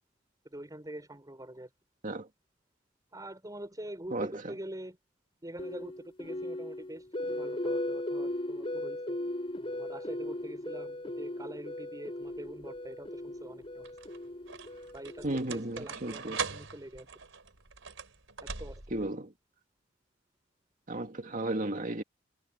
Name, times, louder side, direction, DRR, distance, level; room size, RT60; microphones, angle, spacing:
voice 1, 0.4-1.7 3.1-5.0 5.4-9.2 9.7-14.0 14.9-17.1 18.4-18.8, right 1 dB, 20° right, 5.9 m, -45 dB
sound 1, 5.6-15.7, left 1 dB, 30° left, 7.2 m, -37 dB
sound 2, 12.3-12.8 13.6-19.1, right 6 dB, 85° right, 3.9 m, -41 dB
voice 2, 15.2-16.4 18.9-19.3 20.9-22.0, right 1 dB, 45° right, 2.2 m, -34 dB
head